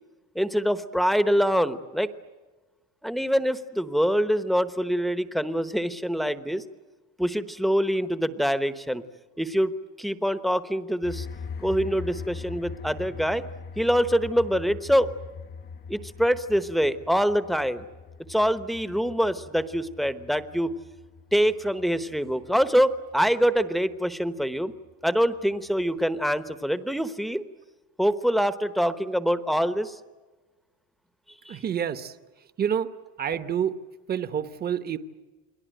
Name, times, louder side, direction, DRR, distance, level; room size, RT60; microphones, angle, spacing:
voice 1, 0.3-2.1 3.0-6.6 7.2-9.0 9.4-11.3 11.6-13.4 13.8-15.1 15.9-17.8 18.3-20.8 21.3-24.7 25.0-27.4 28.0-30.0 31.4-31.6, equal, ahead, 11 dB, 1.0 m, -25 dB
sound 1, 11.0-26.5, left 5 dB, 25° left, 0.9 m, -42 dB
voice 2, 31.5-32.1 32.6-32.9 33.2-33.7 34.1-35.0, right 8 dB, 20° right, 11 dB, 1.1 m, -28 dB
29.5 x 22.0 x 9.2 m, 1.2 s
cardioid pair, 155°, 42 cm